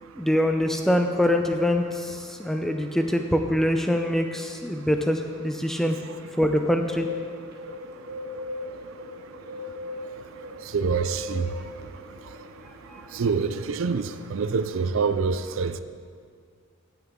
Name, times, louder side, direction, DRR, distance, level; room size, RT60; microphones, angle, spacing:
voice 1, 0.2-6.0 6.4-7.1, left 1 dB, ahead, 4 dB, 0.4 m, -24 dB
Bird, 6.5-14.8, left 1 dB, 45° right, 1.2 m, -39 dB
voice 2, 10.7-11.5 13.1-15.8, right 5 dB, 65° right, 11 dB, 0.4 m, -26 dB
16.5 x 6.8 x 3.7 m, 2.2 s
head